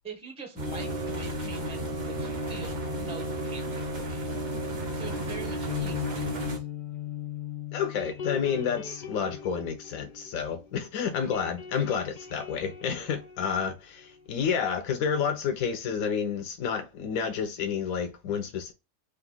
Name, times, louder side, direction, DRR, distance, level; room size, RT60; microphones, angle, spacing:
voice 1, 0.0-4.5 4.9-6.6, right 3 dB, 5° right, 0.7 m, -44 dB
sound 1, 0.6-6.6, right 1 dB, 40° right, 0.8 m, -33 dB
sound 2, 5.0-10.8 11.1-14.6, left 9 dB, 50° left, 0.6 m, -39 dB
voice 2, 7.7-18.7, left 7 dB, 80° left, 1.1 m, -30 dB
3.9 x 2.6 x 3.7 m
omnidirectional pair, 1.4 m